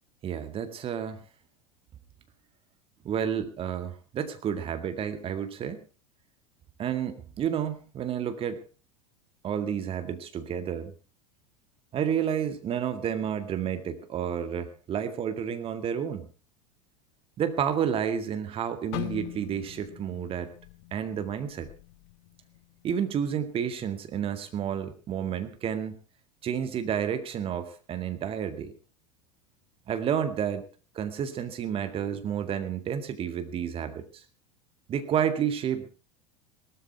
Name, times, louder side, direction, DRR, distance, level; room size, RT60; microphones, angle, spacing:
voice 1, 0.2-1.2 3.0-5.8 6.8-8.6 9.4-10.9 11.9-16.3 17.4-20.5 20.9-21.7 22.8-26.0 26.4-28.7 29.9-30.7 30.9-34.2 34.9-35.9, right 8 dB, 35° right, 9 dB, 2.1 m, -30 dB
sound 1, 18.9-23.0 23.3-23.6 24.2-24.6, left 18 dB, 55° left, 1.0 m, -41 dB
18.0 x 13.5 x 4.6 m, 0.35 s
figure-of-eight pair, 80°, 17 cm